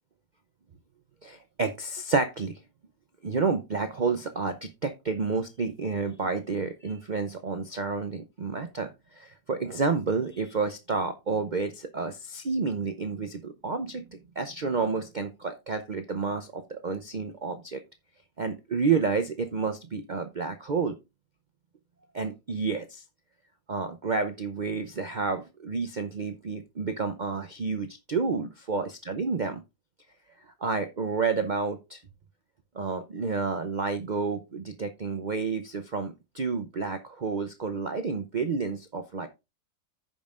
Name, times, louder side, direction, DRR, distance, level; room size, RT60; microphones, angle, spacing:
voice 1, 1.2-2.6 3.2-17.8 18.4-21.0 22.1-23.0 23.7-29.6 30.6-32.0 32.7-39.3, right 4 dB, 85° right, 8 dB, 0.4 m, -30 dB
15.0 x 5.3 x 2.4 m, 0.24 s
omnidirectional pair, 1.8 m